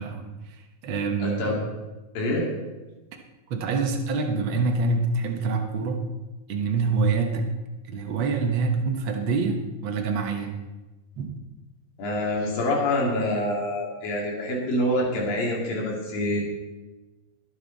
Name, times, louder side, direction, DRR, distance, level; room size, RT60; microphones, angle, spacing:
voice 1, 0.0-1.4 3.5-6.0 6.5-7.5 7.9-10.5 11.1-11.3, right 4 dB, 65° right, 3 dB, 1.2 m, -26 dB
voice 2, 1.2-1.6 2.1-2.5 12.0-16.4, left 1 dB, 75° left, -2 dB, 4.7 m, -26 dB
21.0 x 9.1 x 4.1 m, 1.1 s
omnidirectional pair, 4.1 m